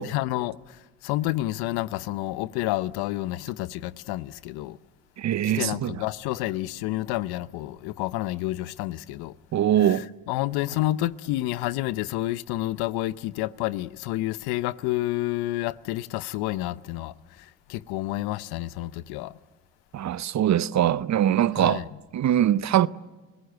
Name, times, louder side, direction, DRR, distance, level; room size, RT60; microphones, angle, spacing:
voice 1, 0.0-4.8 5.4-9.4 9.8-19.4 21.6-21.8, left 16 dB, 75° left, 0.8 m, -29 dB
voice 2, 5.2-6.0 9.5-10.1 19.9-21.8 22.1-22.9, right 11 dB, 45° right, 0.7 m, -22 dB
29.5 x 17.5 x 8.0 m
supercardioid pair, 65°, 38 cm